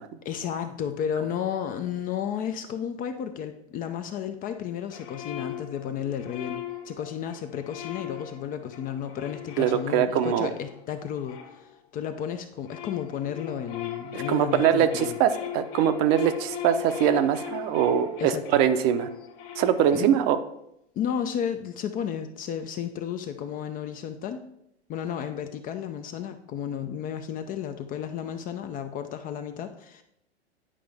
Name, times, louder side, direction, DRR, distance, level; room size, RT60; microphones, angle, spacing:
voice 1, 0.2-15.2 18.2-18.6 19.9-20.2 21.0-24.4 24.9-30.0, left 8 dB, 25° left, 8 dB, 0.5 m, -33 dB
sound 1, 4.9-12.1 12.5-20.4, left 11 dB, 50° left, 1.2 m, -39 dB
voice 2, 9.6-10.5 14.1-19.1 19.6-20.4, right 9 dB, 40° right, 10 dB, 0.7 m, -23 dB
9.9 x 5.0 x 3.4 m, 0.79 s
hypercardioid pair, 105°, 34 cm